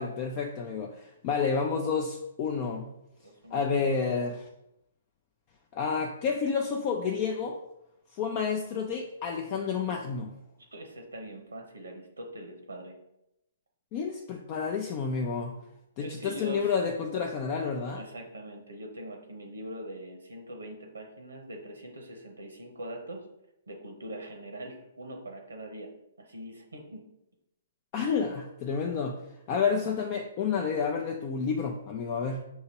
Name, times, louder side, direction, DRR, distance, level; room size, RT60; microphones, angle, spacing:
voice 1, 0.0-2.9 3.5-4.4 5.7-7.6 8.1-10.3 13.9-15.6 16.0-18.0 27.9-29.2 29.5-32.4, left 5 dB, 40° left, 1 dB, 0.4 m, -30 dB
voice 2, 3.2-4.2 10.7-12.9 16.0-16.7 18.0-23.2 23.7-25.9 26.2-27.0, right 1 dB, 85° right, 2 dB, 0.8 m, -42 dB
5.5 x 2.9 x 2.9 m, 0.85 s
hypercardioid pair, 125°, 0 cm